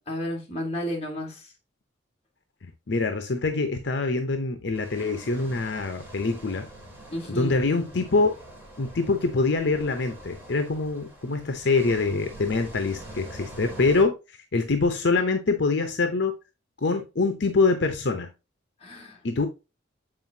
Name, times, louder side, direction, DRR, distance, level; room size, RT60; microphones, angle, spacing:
voice 1, 0.1-1.5 7.1-7.6 18.8-19.2, equal, 30° left, 1.7 m, -32 dB
voice 2, 2.6-6.7 7.3-8.3 8.8-16.4 16.8-18.3 19.2-19.5, left 3 dB, 65° left, 0.7 m, -25 dB
sound 1, 4.7-14.0, right 1 dB, 10° right, 2.2 m, -44 dB
7.7 x 4.6 x 2.7 m
head